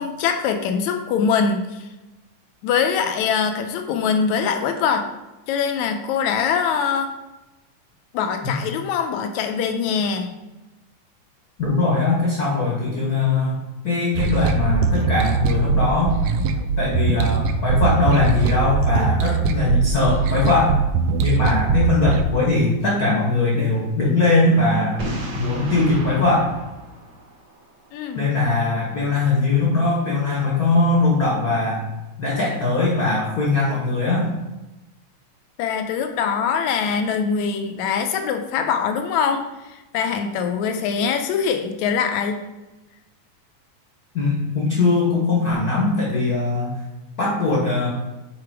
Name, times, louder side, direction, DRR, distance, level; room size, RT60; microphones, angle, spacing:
voice 1, 0.0-1.9 2.6-5.1 5.5-7.1 8.1-10.3 27.9-28.4 35.6-42.5, left 6 dB, 75° left, 6 dB, 1.9 m, -23 dB
voice 2, 11.6-16.1 16.8-20.8 21.2-25.0 25.4-26.5 28.1-31.9 32.2-34.3 44.1-46.7 47.2-47.9, left 3 dB, 50° left, -4 dB, 1.1 m, -20 dB
sound 1, 14.1-22.2, right 5 dB, 80° right, 1.8 m, -21 dB
Boom, 25.0-27.9, right 1 dB, 55° right, 1.2 m, -32 dB
6.8 x 4.6 x 4.6 m, 1.0 s
omnidirectional pair, 3.5 m